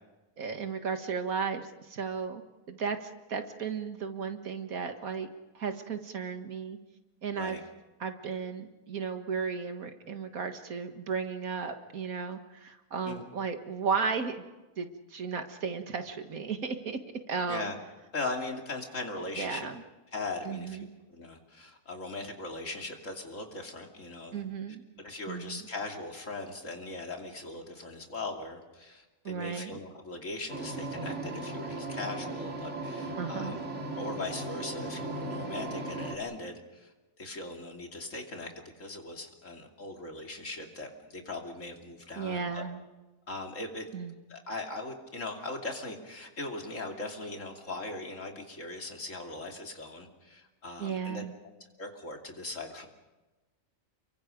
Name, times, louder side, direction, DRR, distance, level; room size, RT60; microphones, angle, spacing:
voice 1, 0.4-2.4 2.7-5.3 5.5-6.8 7.2-7.6 8.0-14.5 14.8-17.0 17.3-17.7 19.4-19.8 20.5-20.9 24.3-24.8 25.3-25.6 29.2-29.8 33.2-33.6 42.2-42.8 43.9-44.2 50.8-51.3, right 5 dB, 85° right, 7 dB, 2.0 m, -34 dB
voice 2, 18.1-19.7 20.1-24.4 25.0-33.7 33.9-42.6 43.3-43.8 44.3-51.2 51.8-52.9, left 2 dB, 65° left, 2 dB, 3.1 m, -39 dB
sound 1, 30.5-36.1, right 2 dB, 55° right, 2.9 m, -37 dB
29.5 x 23.5 x 5.2 m, 1.1 s
omnidirectional pair, 1.5 m